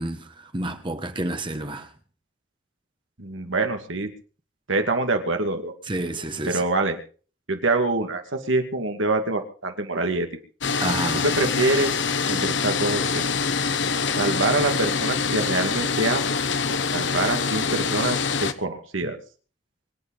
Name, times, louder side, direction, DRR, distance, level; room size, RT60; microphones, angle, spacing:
voice 1, 0.0-1.9 5.8-6.6 10.8-11.2, right 2 dB, 25° right, 1.3 m, -29 dB
voice 2, 3.2-4.1 4.7-5.7 6.5-7.0 7.5-10.3 11.2-12.0 12.3-13.3 14.2-16.2 16.7-19.2, right 2 dB, 90° right, 2.5 m, -25 dB
sound 1, 10.6-18.5, left 5 dB, 70° left, 1.1 m, -25 dB
24.5 x 9.1 x 5.5 m
head